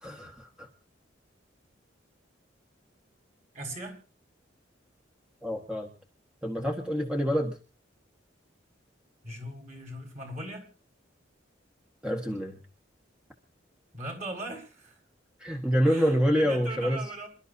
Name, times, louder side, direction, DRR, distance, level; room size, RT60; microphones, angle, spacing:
voice 1, 0.0-0.7 5.4-5.9 6.4-7.6 12.0-12.6 15.4-17.0, equal, 5° right, 1 dB, 1.6 m, -27 dB
voice 2, 3.5-4.0 9.2-10.7 13.9-15.0 15.8-17.3, right 1 dB, 40° right, 3 dB, 6.3 m, -39 dB
28.0 x 12.5 x 2.7 m, 0.34 s
head